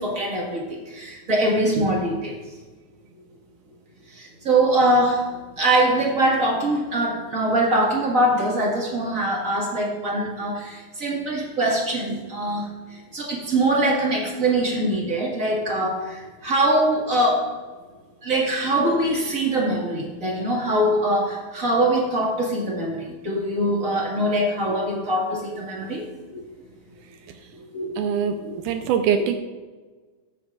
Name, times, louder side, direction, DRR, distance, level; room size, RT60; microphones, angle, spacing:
voice 1, 0.0-2.3 4.2-5.3 5.6-12.7 13.1-17.4 18.2-26.1 26.3-26.4 27.7-28.0 28.5-28.6, right 1 dB, 35° right, -3 dB, 1.4 m, -23 dB
voice 2, 28.0-29.4, right 7 dB, 85° right, 6 dB, 1.9 m, -23 dB
16.0 x 8.3 x 2.5 m, 1.4 s
omnidirectional pair, 4.2 m